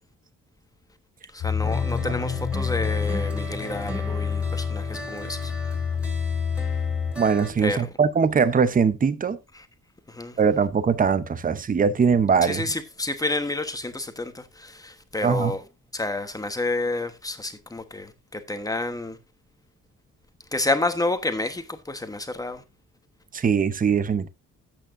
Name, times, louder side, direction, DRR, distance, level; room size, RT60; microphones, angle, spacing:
voice 1, 1.3-5.5 7.6-7.9 9.5-9.7 10.1-10.4 12.4-15.6 15.9-19.2 20.5-22.6, left 2 dB, 10° left, 1.2 m, -29 dB
sound 1, 1.4-7.1, left 6 dB, 90° left, 2.9 m, -28 dB
sound 2, 1.6-7.5, equal, 5° right, 3.3 m, -35 dB
voice 2, 7.2-9.4 10.4-12.6 15.2-15.5 23.3-24.3, right 6 dB, 30° right, 0.7 m, -21 dB
13.0 x 8.5 x 2.6 m
wide cardioid pair, 140°, 29 cm